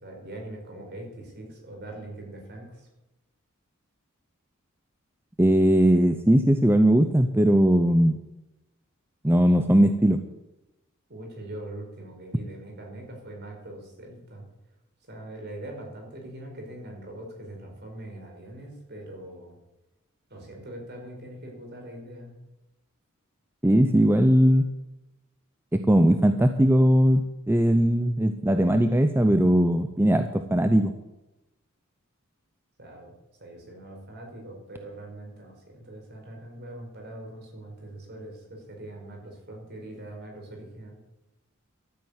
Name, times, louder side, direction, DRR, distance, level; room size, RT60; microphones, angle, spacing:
voice 1, 0.0-2.9 11.1-14.5 15.1-19.6 20.3-22.4 32.8-33.1 33.4-41.0, right 1 dB, 50° right, 1 dB, 4.6 m, -42 dB
voice 2, 5.4-8.2 9.2-10.2 23.6-24.7 25.9-30.9, equal, 10° right, 8 dB, 0.6 m, -19 dB
13.0 x 9.2 x 8.1 m, 0.97 s
head